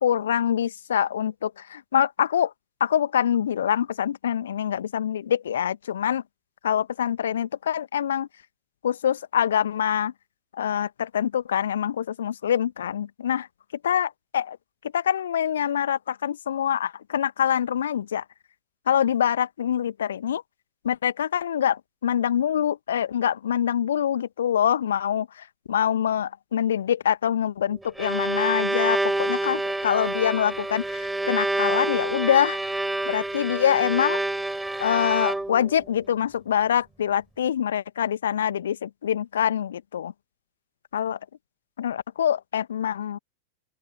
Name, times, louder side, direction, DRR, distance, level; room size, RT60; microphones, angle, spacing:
voice 1, 0.0-2.5 2.8-6.2 6.6-8.3 8.8-10.1 10.6-13.5 13.8-14.6 14.9-18.2 18.9-20.4 20.8-32.6 33.0-34.2 34.8-40.1 40.9-41.2 41.8-43.2, left 9 dB, 65° left, 1.5 m, -25 dB
Bowed string instrument, 27.7-35.8, right 1 dB, 5° right, 5.1 m, -27 dB
open air
figure-of-eight pair, 90°, 0 cm